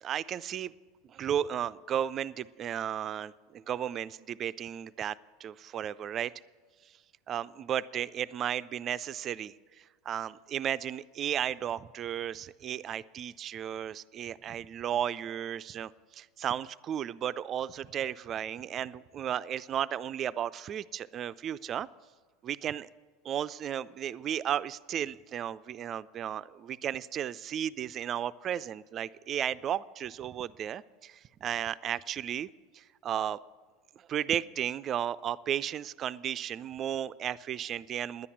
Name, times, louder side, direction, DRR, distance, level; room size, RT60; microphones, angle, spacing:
voice 1, 0.0-0.7 1.1-6.3 7.3-21.9 22.4-22.9 23.2-32.5 32.7-33.4 34.0-38.3, right 10 dB, 40° right, 16 dB, 0.3 m, -34 dB
10.5 x 9.8 x 7.1 m, 1.5 s
hypercardioid pair, 80°, 0 cm